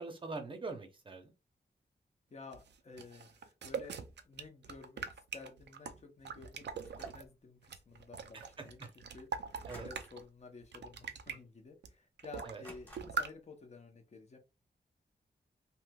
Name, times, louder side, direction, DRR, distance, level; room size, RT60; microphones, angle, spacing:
voice 1, 0.0-1.3 8.3-8.9 9.7-9.9 12.4-12.6, right 3 dB, 30° right, 0.7 m, -43 dB
voice 2, 2.3-4.0 4.2-8.8 9.1-14.4, left 3 dB, 40° left, 0.7 m, -53 dB
sound 1, 2.5-7.2 7.6-10.2 10.6-11.4 11.8-11.9 12.2-12.7 13.0-13.3, right 6 dB, 85° right, 0.4 m, -42 dB
sound 2, 6.8-7.3 9.7-10.3 10.6-11.0 11.4-11.5 12.6-13.4, equal, 10° left, 1.2 m, -55 dB
3.2 x 2.8 x 2.2 m
wide cardioid pair, 140°, 18 cm